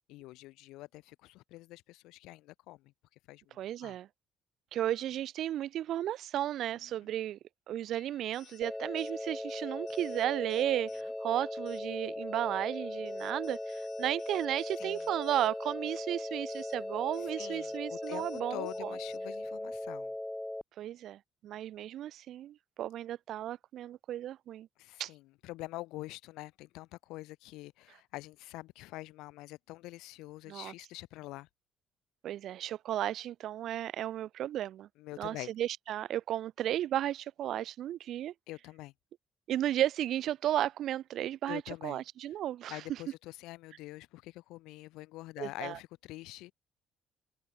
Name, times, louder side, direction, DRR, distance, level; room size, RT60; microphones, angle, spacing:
voice 1, 0.1-2.8 3.3-4.0 6.8-6.9 14.8-15.1 17.3-20.1 24.8-31.5 35.0-35.5 38.5-38.9 41.5-42.0 42.7-46.5, left 19 dB, 80° left, 4.0 m, -45 dB
voice 2, 3.6-4.1 4.7-7.4 7.7-18.9 20.8-24.7 25.0-25.1 30.5-30.7 32.2-34.9 35.2-38.3 39.5-43.0 45.4-45.8, right 12 dB, 70° right, 0.8 m, -34 dB
sound 1, 7.9-19.5, left 10 dB, 65° left, 4.9 m, -61 dB
sound 2, 8.6-20.6, left 1 dB, 10° left, 0.4 m, -39 dB
open air
supercardioid pair, 65°, 0 cm